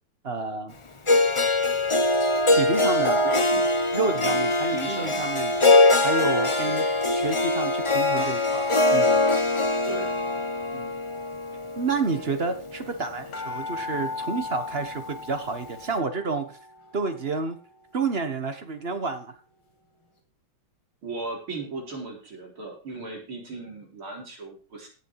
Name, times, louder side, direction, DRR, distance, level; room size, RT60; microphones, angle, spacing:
voice 1, 0.2-0.7 2.5-3.3 3.9-5.7 6.0-6.9 7.1-9.2 10.7-10.9 11.8-16.6 16.9-17.6 17.9-19.3, right 4 dB, 35° right, 8 dB, 1.4 m, -29 dB
Harp, 1.1-13.2, left 2 dB, 45° left, 0.4 m, -23 dB
voice 2, 3.2-3.7 4.2-4.4 4.7-5.3 6.6-6.8 9.8-10.2 21.0-24.9, right 3 dB, 90° right, -1 dB, 5.0 m, -37 dB
sound 1, 10.2-10.5 11.3-11.4 11.6-11.7 11.9-19.6 20.0-20.1, left 3 dB, 80° left, 3.9 m, -39 dB
17.5 x 6.5 x 4.7 m, 0.36 s
omnidirectional pair, 2.2 m